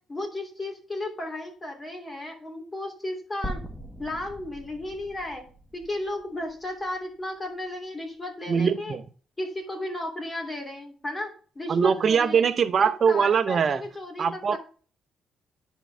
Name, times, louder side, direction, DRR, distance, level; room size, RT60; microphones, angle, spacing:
voice 1, 0.1-3.6 4.0-5.4 5.7-9.0 9.4-11.3 11.5-12.5 12.8-14.6, left 1 dB, 25° left, 2.9 m, -34 dB
sound 1, 3.4-7.7, right 1 dB, ahead, 1.1 m, -41 dB
voice 2, 8.5-9.0 11.7-13.8 14.2-14.6, right 6 dB, 50° right, 0.7 m, -22 dB
10.0 x 4.5 x 3.4 m
cardioid pair, 90°, 0 cm